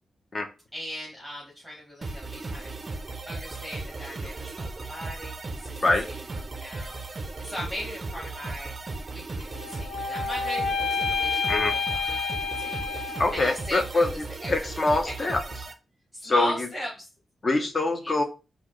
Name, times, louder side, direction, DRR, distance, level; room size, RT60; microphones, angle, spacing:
voice 1, 0.7-2.7 3.3-5.8 6.0-8.7 9.1-11.4 11.7-14.5 15.0-15.1 15.5-15.6 16.1-17.1 18.0-18.2, equal, ahead, -4 dB, 1.1 m, -39 dB
sound 1, 2.0-15.7, right 3 dB, 35° right, 0.4 m, -36 dB
sound 2, 9.5-13.8, left 5 dB, 70° left, 0.3 m, -29 dB
voice 2, 13.2-14.1 14.5-15.4 16.2-16.7 17.4-18.2, left 2 dB, 35° left, 5 dB, 0.7 m, -24 dB
4.2 x 2.4 x 2.9 m, 0.30 s
wide cardioid pair, 130°, 0 cm